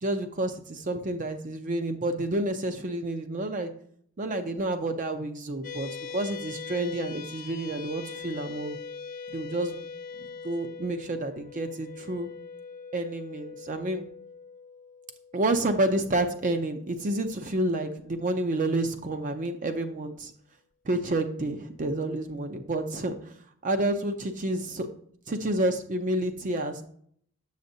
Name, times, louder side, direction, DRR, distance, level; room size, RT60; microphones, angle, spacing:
voice 1, 0.0-3.7 4.2-8.8 9.3-9.8 10.2-12.3 12.9-14.0 15.3-20.3 20.9-23.2 23.6-24.9 25.3-26.8, right 1 dB, 35° right, 7 dB, 0.5 m, -29 dB
sound 1, 5.6-18.3, left 5 dB, 35° left, 0.5 m, -43 dB
6.9 x 6.5 x 2.7 m, 0.63 s
head